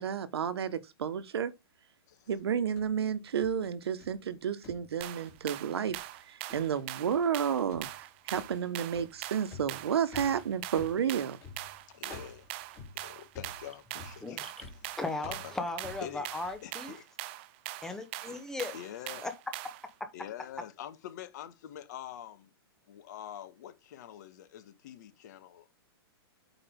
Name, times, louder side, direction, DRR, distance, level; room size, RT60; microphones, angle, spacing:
voice 1, 0.0-1.5 2.3-11.4, right 8 dB, 80° right, 1.3 m, -31 dB
sound 1, 2.4-4.3 4.6-5.6 5.9-6.2 6.5-6.8 7.1-7.4 7.7-16.7, left 4 dB, 20° left, 3.1 m, -51 dB
sound 2, 5.0-19.9, right 16 dB, 25° right, 0.4 m, -42 dB
voice 2, 11.9-12.5 12.9-14.5 14.9-15.6 16.0-17.0 18.7-19.2 20.1-22.5 22.9-25.7, left 11 dB, 45° left, 1.3 m, -45 dB
voice 3, 15.0-17.0 17.8-18.8 19.2-19.3 20.0-20.1, left 3 dB, 5° left, 0.9 m, -37 dB
8.3 x 5.2 x 3.6 m
hypercardioid pair, 165°, 13 cm